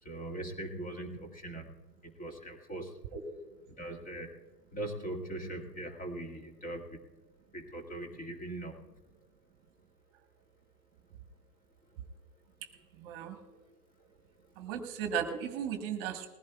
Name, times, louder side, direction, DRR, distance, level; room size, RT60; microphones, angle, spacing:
voice 1, 0.0-3.0 3.8-7.1 7.5-8.9 13.5-13.6 14.0-14.1 14.4-14.7, right 1 dB, 15° left, 3 dB, 1.8 m, -41 dB
voice 2, 13.0-13.4 14.6-16.3, right 8 dB, 35° right, 7 dB, 1.4 m, -35 dB
20.5 x 15.5 x 2.3 m, 1.2 s
figure-of-eight pair, 115°, 48 cm